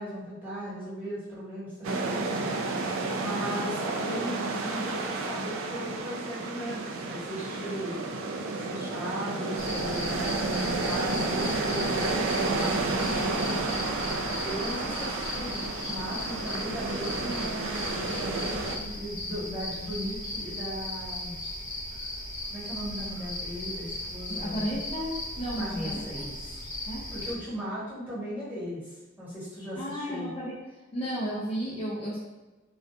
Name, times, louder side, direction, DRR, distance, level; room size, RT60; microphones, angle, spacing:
voice 1, 0.0-2.8 3.2-8.0 8.6-21.3 22.5-24.8 25.6-26.6 27.1-30.3, equal, 10° right, -11 dB, 1.1 m, -37 dB
sound 1, 1.8-18.8, right 3 dB, 80° right, 0.3 m, -31 dB
sound 2, 9.6-27.3, left 1 dB, 75° left, 0.8 m, -37 dB
voice 2, 24.3-26.0 26.9-27.1 29.8-30.5 30.9-32.2, equal, 30° left, -7 dB, 0.4 m, -33 dB
2.3 x 2.2 x 2.6 m, 1.1 s
head